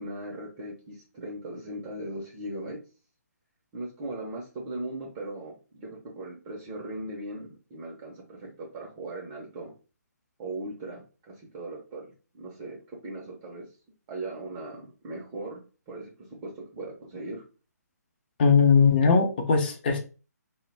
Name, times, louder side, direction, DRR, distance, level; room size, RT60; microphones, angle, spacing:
voice 1, 0.0-2.8 3.7-9.7 10.4-13.7 14.1-17.4, right 2 dB, 20° right, -2 dB, 0.5 m, -39 dB
voice 2, 18.4-20.0, left 5 dB, 35° left, 3 dB, 0.6 m, -20 dB
2.1 x 2.0 x 3.2 m, 0.35 s
figure-of-eight pair, 145°, 9 cm